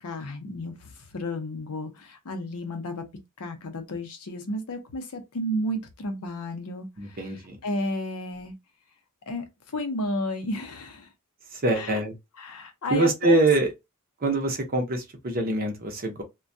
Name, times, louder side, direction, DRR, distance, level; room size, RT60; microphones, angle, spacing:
voice 1, 0.0-3.0 3.4-7.3 7.6-8.5 9.3-9.5 9.7-11.1 11.8-12.0 12.4-13.4, left 1 dB, 80° left, 0.7 m, -32 dB
voice 2, 7.0-7.6 11.5-12.1 12.9-13.7 14.2-16.2, right 2 dB, 45° right, 0.7 m, -24 dB
2.2 x 2.1 x 2.6 m
head